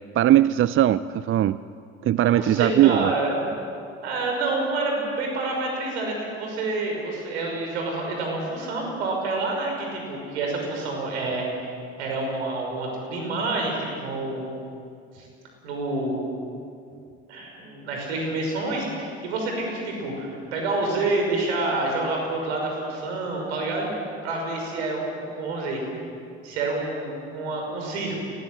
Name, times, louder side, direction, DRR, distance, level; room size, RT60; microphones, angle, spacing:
voice 1, 0.2-1.6 2.0-3.1, right 12 dB, 40° right, 16 dB, 0.6 m, -19 dB
voice 2, 2.2-3.5 4.0-11.7 12.0-14.5 15.1-15.3 15.6-16.2 17.3-23.9 24.2-25.8 26.4-28.2, right 2 dB, 80° right, 1 dB, 5.9 m, -28 dB
23.5 x 18.5 x 8.0 m, 2.4 s
hypercardioid pair, 60°, 33 cm